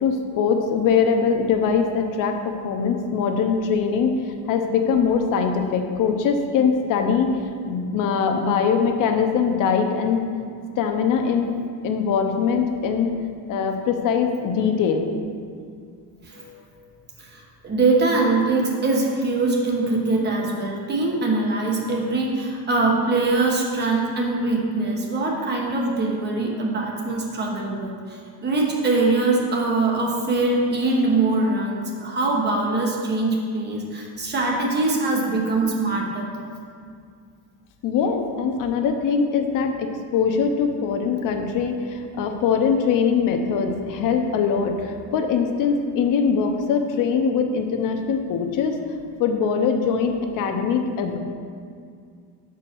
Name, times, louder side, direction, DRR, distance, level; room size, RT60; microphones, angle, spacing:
voice 1, 0.0-4.2 4.5-7.3 7.7-10.2 10.8-11.5 11.8-13.1 13.5-15.1 16.4-16.7 37.8-48.8 49.2-51.2, left 6 dB, 60° left, 5 dB, 0.8 m, -22 dB
voice 2, 17.3-36.3, right 3 dB, 30° right, -1 dB, 1.1 m, -23 dB
5.7 x 4.7 x 6.1 m, 2.2 s
cardioid pair, 150°, 36 cm